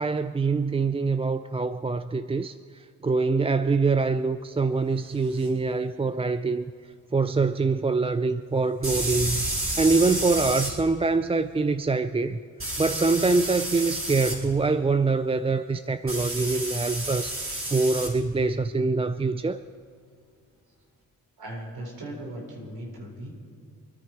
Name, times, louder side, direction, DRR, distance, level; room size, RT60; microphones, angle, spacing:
voice 1, 0.0-2.5 3.0-6.6 7.1-9.4 9.8-12.4 12.8-17.3 17.7-19.6, right 3 dB, 15° right, 0.4 m, -24 dB
sound 1, 5.4-5.5 8.8-10.7 12.6-14.4 16.1-18.1, right 1 dB, 35° right, 4.5 m, -30 dB
voice 2, 21.4-23.3, right 1 dB, 80° right, 4.6 m, -38 dB
26.0 x 10.5 x 4.6 m
cardioid pair, 55°, 36 cm